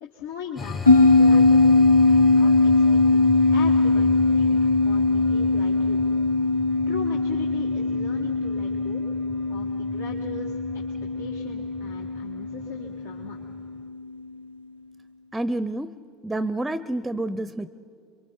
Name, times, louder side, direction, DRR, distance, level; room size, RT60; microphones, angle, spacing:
voice 1, 0.0-2.7 3.1-6.0 6.9-9.0 9.5-10.8 11.2-13.4, left 5 dB, 70° left, -1 dB, 1.7 m, -39 dB
sound 1, 0.6-13.8, left 4 dB, 30° left, 1.2 m, -38 dB
sound 2, 0.9-13.6, left 3 dB, 90° left, 0.8 m, -20 dB
voice 2, 15.3-15.9 16.2-17.7, right 1 dB, 10° right, 16 dB, 0.6 m, -28 dB
29.0 x 23.0 x 4.6 m, 2.4 s
figure-of-eight pair, 70°, 0 cm